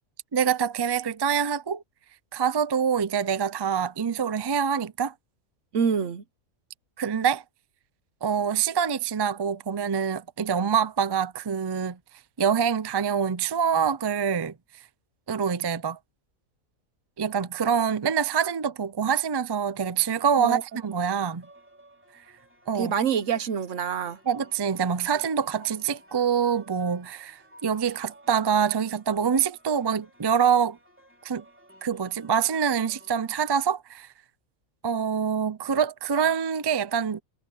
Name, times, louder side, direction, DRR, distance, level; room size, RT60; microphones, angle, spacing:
voice 1, 0.3-1.8 2.3-5.1 7.0-7.4 8.2-12.0 12.4-14.5 15.3-16.0 17.2-21.5 22.7-22.9 24.3-30.8 31.2-31.4 31.8-34.1 34.8-37.2, right 7 dB, 40° right, 0.3 m, -25 dB
voice 2, 5.7-6.2 20.4-20.6 22.7-24.2, right 7 dB, 65° right, 1.2 m, -26 dB
sound 1, 20.4-33.2, right 1 dB, 10° right, 3.6 m, -55 dB
omnidirectional pair, 1.4 m